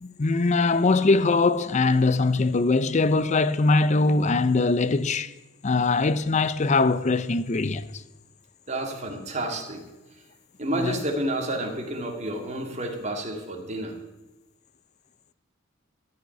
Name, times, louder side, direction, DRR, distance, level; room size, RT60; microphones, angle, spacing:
voice 1, 0.0-5.3 5.6-7.9 10.7-11.0, left 3 dB, 35° left, 0.5 m, -22 dB
voice 2, 8.7-9.8 10.6-13.9, right 1 dB, 35° right, 2.1 m, -30 dB
14.0 x 5.8 x 9.2 m
head